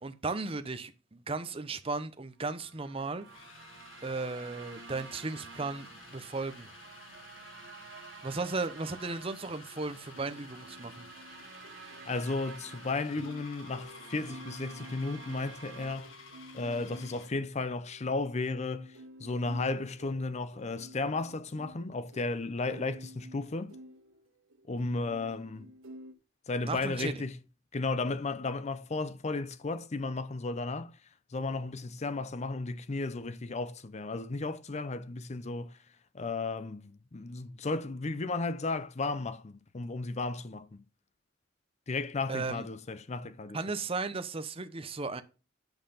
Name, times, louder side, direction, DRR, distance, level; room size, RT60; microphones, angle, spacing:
voice 1, 0.0-3.3 4.0-6.7 8.2-11.1 26.6-27.2 42.3-42.7 43.5-45.2, right 3 dB, 30° right, 0.8 m, -35 dB
sound 1, 2.5-15.9, right 6 dB, 60° right, 1.2 m, -51 dB
sound 2, 3.2-17.4, left 5 dB, 75° left, 1.6 m, -53 dB
sound 3, 10.1-26.1, right 1 dB, 80° right, 1.0 m, -52 dB
voice 2, 12.1-16.1 16.5-23.8 24.7-25.7 26.5-27.4 27.7-30.9 31.3-35.8 36.1-40.8 41.9-43.6, left 3 dB, 35° left, 0.6 m, -34 dB
9.0 x 5.6 x 5.6 m
head